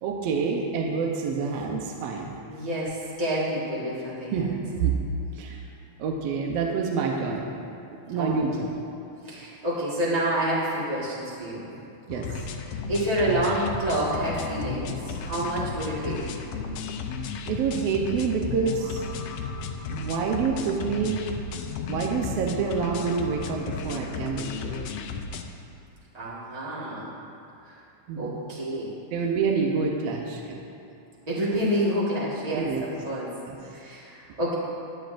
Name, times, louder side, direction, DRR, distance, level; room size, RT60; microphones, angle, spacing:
voice 1, 0.0-2.3 4.3-5.0 5.4-5.6 6.0-7.5 7.9-8.7 12.1-12.3 17.5-19.0 19.9-21.2 21.9-24.8 28.1-28.5 29.1-30.6 32.5-32.8 33.5-33.6, right 5 dB, 70° right, 0 dB, 1.7 m, -27 dB
voice 2, 2.5-4.5 8.1-8.4 9.2-11.6 12.6-16.4 26.1-27.1 27.6-27.8 28.2-29.0 31.3-33.3 33.6-34.5, right 1 dB, 35° right, -8 dB, 0.6 m, -28 dB
sound 1, 12.1-25.4, left 5 dB, 75° left, 1.6 m, -34 dB
22.0 x 7.7 x 2.5 m, 2.8 s
omnidirectional pair, 3.5 m